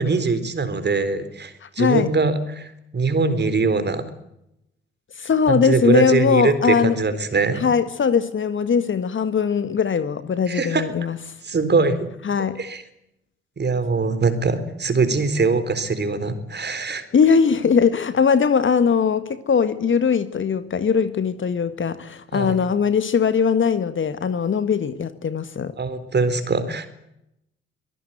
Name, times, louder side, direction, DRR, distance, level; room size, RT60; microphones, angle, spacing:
voice 1, 0.0-4.0 5.5-7.6 10.5-10.8 11.4-12.0 12.6-12.8 13.6-17.0 22.3-22.6 25.8-26.9, right 4 dB, 35° right, 10 dB, 4.0 m, -22 dB
voice 2, 1.6-2.1 5.2-7.0 7.6-11.2 12.2-12.6 17.1-25.7, left 6 dB, 40° left, 12 dB, 1.7 m, -20 dB
24.5 x 18.0 x 9.3 m, 0.82 s
figure-of-eight pair, 45°, 31 cm